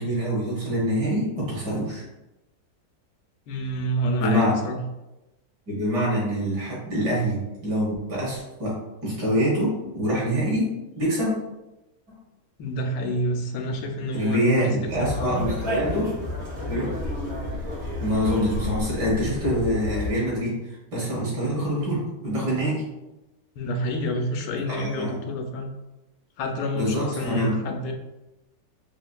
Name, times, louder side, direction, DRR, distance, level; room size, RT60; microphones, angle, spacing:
voice 1, 0.0-2.0 4.2-4.5 5.7-10.7 11.0-11.3 14.1-16.1 16.7-16.9 18.0-22.8 24.7-25.1 26.7-27.5, equal, 75° right, -7 dB, 2.2 m, -25 dB
voice 2, 3.5-4.8 12.6-15.4 23.6-25.7 26.4-27.9, equal, 90° left, 4 dB, 1.2 m, -28 dB
Conversation, 14.9-20.1, left 1 dB, 55° right, 2.0 m, -31 dB
4.5 x 2.4 x 2.2 m, 0.99 s
omnidirectional pair, 1.8 m